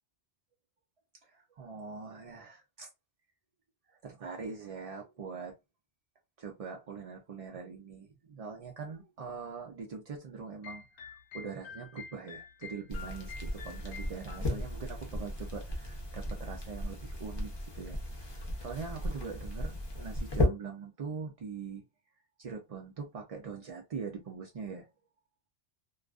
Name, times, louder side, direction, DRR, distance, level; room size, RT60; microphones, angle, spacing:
voice 1, 1.2-2.9 3.9-5.5 6.4-21.8 22.4-24.9, right 5 dB, 65° right, 0.3 m, -43 dB
sound 1, 10.6-14.4, left 6 dB, 75° left, 0.8 m, -48 dB
sound 2, 12.9-20.5, left 1 dB, 35° left, 0.5 m, -35 dB
2.4 x 2.3 x 2.3 m
omnidirectional pair, 1.2 m